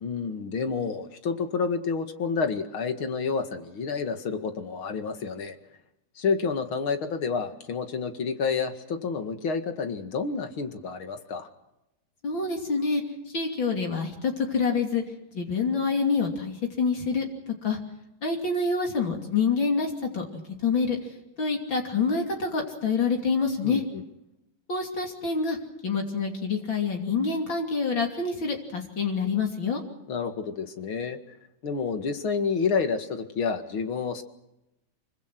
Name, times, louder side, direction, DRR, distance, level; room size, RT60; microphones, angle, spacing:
voice 1, 0.0-5.6 6.2-11.5 23.6-24.0 30.1-31.2 31.6-34.2, left 5 dB, 85° left, 7 dB, 2.8 m, -29 dB
voice 2, 12.2-15.0 15.3-17.8 18.2-20.3 20.6-23.8 24.7-25.6 25.8-29.8, left 4 dB, 70° left, 2 dB, 3.7 m, -27 dB
26.0 x 24.5 x 6.2 m, 0.90 s
omnidirectional pair, 2.2 m